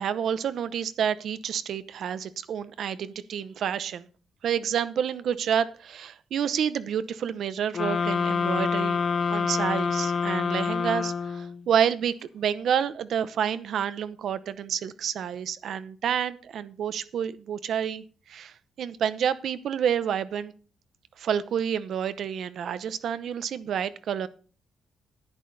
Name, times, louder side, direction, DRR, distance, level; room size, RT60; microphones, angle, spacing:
voice 1, 0.0-4.1 4.4-9.0 9.3-18.0 18.3-20.5 21.2-24.3, right 8 dB, 60° right, 14 dB, 0.8 m, -29 dB
sound 1, 7.7-11.6, left 5 dB, 35° left, 0.5 m, -27 dB
10.5 x 10.5 x 4.1 m, 0.39 s
cardioid pair, 170°, 0 cm